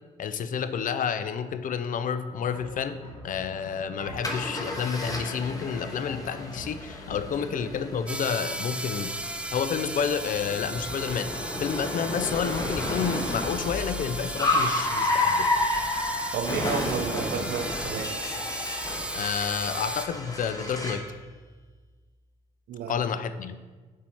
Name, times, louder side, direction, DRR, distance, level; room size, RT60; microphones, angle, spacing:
voice 1, 0.2-2.9 3.2-9.2 9.5-15.5 19.1-21.0 22.9-23.6, left 7 dB, 50° left, 12 dB, 0.5 m, -30 dB
sound 1, 2.4-8.0, left 1 dB, 90° left, 1.3 m, -44 dB
Car, 4.2-21.1, left 2 dB, 20° left, 1.3 m, -31 dB
annoying hose, 8.1-20.1, right 1 dB, 5° right, 0.6 m, -35 dB
voice 2, 16.3-18.2 22.7-23.1, right 7 dB, 65° right, 9 dB, 0.6 m, -32 dB
6.9 x 4.7 x 4.3 m, 1.4 s
hypercardioid pair, 50°, 17 cm